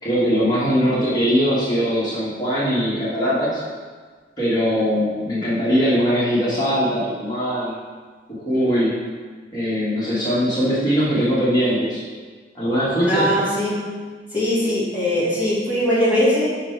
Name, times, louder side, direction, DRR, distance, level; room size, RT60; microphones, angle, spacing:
voice 1, 0.0-3.6 4.4-7.7 8.3-9.0 9.5-12.0 12.5-13.4, equal, 25° left, -9 dB, 1.8 m, -21 dB
voice 2, 13.0-13.8 14.3-16.5, equal, 10° right, -10 dB, 1.6 m, -20 dB
5.7 x 4.2 x 4.5 m, 1.5 s
head